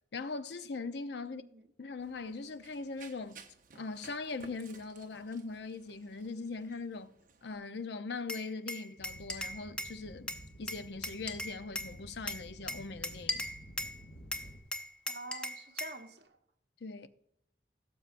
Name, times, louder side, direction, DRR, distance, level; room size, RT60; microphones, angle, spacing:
voice 1, 0.1-1.4 1.8-3.4 3.7-7.1 7.4-10.3 10.6-13.5 16.8-17.1, left 4 dB, 70° left, 0.6 m, -40 dB
voice 2, 1.2-1.6 15.1-16.4, right 2 dB, 65° right, 1.1 m, -47 dB
Run, 2.0-7.6, right 5 dB, 45° right, 0.8 m, -57 dB
Glass, 8.3-10.0 10.3-11.9 12.3-14.0 14.3-16.0, left 1 dB, 5° left, 0.7 m, -38 dB
sound 1, 9.0-14.6, equal, 90° left, 3.3 m, -52 dB
17.0 x 6.9 x 2.5 m
head